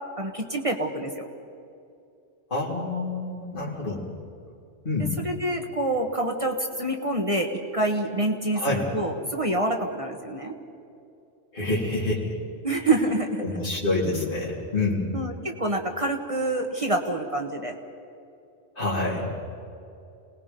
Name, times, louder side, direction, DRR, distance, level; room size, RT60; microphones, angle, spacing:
voice 1, 0.2-1.3 5.2-10.5 12.6-13.4 15.1-17.8, right 1 dB, 30° right, 3 dB, 1.5 m, -27 dB
voice 2, 2.5-4.0 4.8-5.1 8.5-8.9 11.5-12.4 13.4-15.1 18.8-19.4, left 2 dB, 50° left, -5 dB, 3.6 m, -27 dB
28.0 x 19.0 x 5.3 m, 2.7 s
omnidirectional pair, 1.2 m